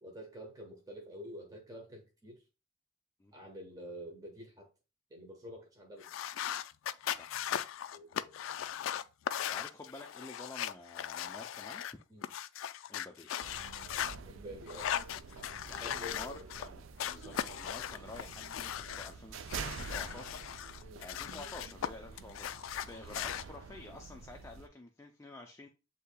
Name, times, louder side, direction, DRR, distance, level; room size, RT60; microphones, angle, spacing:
voice 1, 0.0-2.4 3.3-4.7 5.1-6.1 7.9-8.4 12.1-12.3 14.2-15.0 15.5-16.5 20.8-21.1 22.9-23.1, equal, 20° right, 0.9 m, -48 dB
sound 1, 6.0-14.1 14.7-16.7 17.0-19.1 19.5-21.9 22.2-23.4, left 10 dB, 80° left, 0.3 m, -38 dB
voice 2, 9.5-11.8 12.9-13.3 15.4-25.7, left 2 dB, 15° left, 0.4 m, -50 dB
sound 2, 13.4-24.7, right 5 dB, 90° right, 0.4 m, -47 dB
8.2 x 2.7 x 2.2 m
head